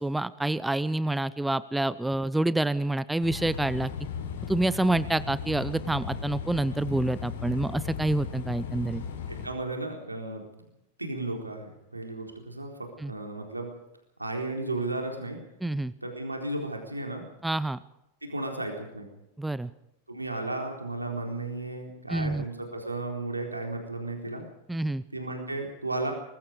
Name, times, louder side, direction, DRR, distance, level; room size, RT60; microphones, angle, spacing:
voice 1, 0.0-3.9 4.5-9.0 13.0-13.1 15.6-15.9 17.4-17.8 19.4-19.7 22.1-22.4 24.7-25.0, right 2 dB, 5° right, 18 dB, 0.7 m, -27 dB
sound 1, 3.2-9.5, left 7 dB, 60° left, 4.6 m, -36 dB
voice 2, 9.3-10.4 11.0-13.7 14.2-15.4 16.0-17.2 18.2-19.1 20.1-24.4 25.1-26.1, right 2 dB, 85° right, 2 dB, 4.1 m, -34 dB
24.0 x 21.0 x 5.2 m, 0.85 s
figure-of-eight pair, 90°, 0 cm